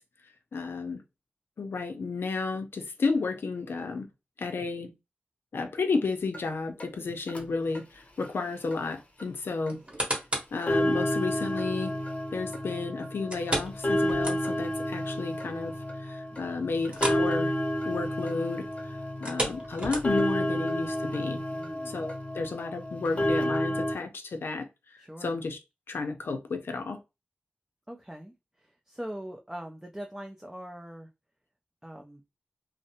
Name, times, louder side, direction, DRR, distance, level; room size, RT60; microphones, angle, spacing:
voice 1, 0.5-1.0 1.6-4.1 4.4-4.9 5.5-9.8 10.5-11.9 12.3-15.7 16.0-17.5 17.9-18.7 19.2-21.4 21.9-24.7 25.2-25.6 25.9-27.0, left 4 dB, 85° left, 0.5 m, -32 dB
sound 1, 6.3-6.4 6.8-6.9 7.3-7.4 7.7-7.8 8.2-8.3 8.7-8.8 9.2-9.3 9.7-9.8 10.2-10.3 10.6-23.9, equal, 35° left, 0.7 m, -30 dB
sound 2, 9.7-10.6 11.1-11.2 13.3-14.8 15.1-15.2 15.6-15.7 16.9-17.3 17.6-17.8 19.1-20.4 21.0-21.1, right 1 dB, 30° right, 0.9 m, -32 dB
voice 2, 21.5-22.0 25.0-25.4 27.9-28.3 28.9-31.1 31.8-32.2, equal, 10° right, 0.3 m, -41 dB
2.5 x 2.0 x 2.7 m
wide cardioid pair, 90°, 4 cm